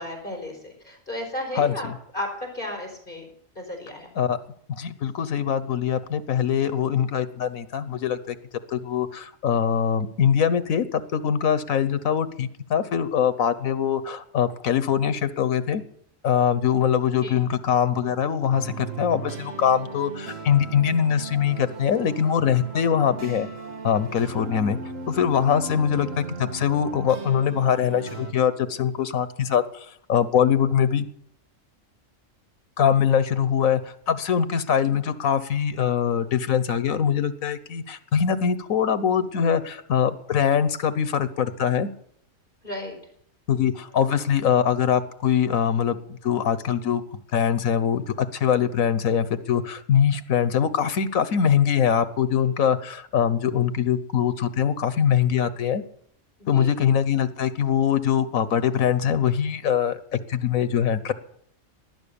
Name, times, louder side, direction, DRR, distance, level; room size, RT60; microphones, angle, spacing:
voice 1, 0.0-1.9 2.1-3.2 3.5-4.1 17.2-17.4 42.6-42.9 56.5-56.7, left 1 dB, 40° left, 2 dB, 4.8 m, -33 dB
voice 2, 1.5-1.9 4.2-4.4 4.7-8.3 8.7-15.8 16.2-23.5 23.8-24.8 25.1-31.0 32.8-41.9 43.5-46.0 46.2-47.0 47.3-55.8 56.5-60.0 60.3-61.1, left 8 dB, 90° left, 13 dB, 1.4 m, -23 dB
sound 1, 18.5-28.3, right 4 dB, 70° right, 2.1 m, -37 dB
19.0 x 11.0 x 7.0 m, 0.67 s
omnidirectional pair, 1.4 m